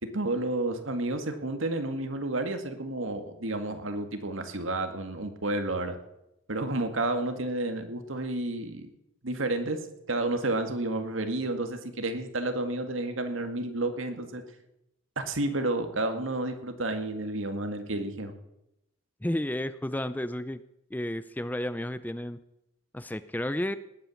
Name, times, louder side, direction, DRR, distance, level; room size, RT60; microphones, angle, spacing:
voice 1, 0.0-6.0 6.5-8.9 9.2-9.8 10.1-14.4 15.2-18.3, right 2 dB, 85° right, 7 dB, 2.0 m, -31 dB
voice 2, 19.2-20.6 20.9-22.4 22.9-23.8, left 1 dB, 10° left, 14 dB, 0.5 m, -32 dB
19.0 x 9.1 x 7.1 m, 0.85 s
head